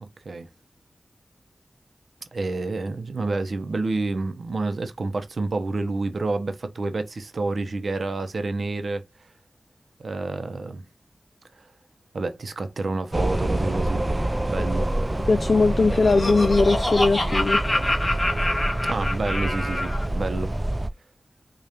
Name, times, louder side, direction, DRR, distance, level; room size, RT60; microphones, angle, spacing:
voice 1, 0.0-0.5 2.3-9.0 10.0-10.8 12.1-14.1 14.4-14.9 18.9-20.6, right 3 dB, 65° right, 0.7 m, -28 dB
sound 1, 13.1-20.9, right 1 dB, 20° right, 0.4 m, -27 dB
voice 2, 15.3-17.6, left 3 dB, 55° left, 0.3 m, -20 dB
Laughter, 15.6-20.1, left 1 dB, 30° left, 1.6 m, -27 dB
4.9 x 2.4 x 2.8 m
wide cardioid pair, 70°, 0 cm